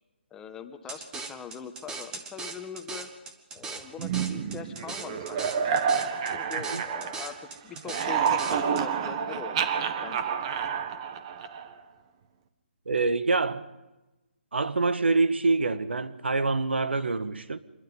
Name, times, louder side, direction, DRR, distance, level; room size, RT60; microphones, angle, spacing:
voice 1, 0.3-3.1 3.5-5.7 6.1-9.6 10.0-10.3, left 7 dB, 10° left, 1.4 m, -42 dB
sound 1, 0.9-8.8, right 4 dB, 10° right, 1.5 m, -40 dB
sound 2, 4.0-7.5 7.8-11.8, right 7 dB, 30° right, 1.5 m, -29 dB
voice 2, 12.9-13.7 14.5-17.6, right 3 dB, 80° right, 1.6 m, -25 dB
26.5 x 22.0 x 5.5 m
hypercardioid pair, 155°, 6 cm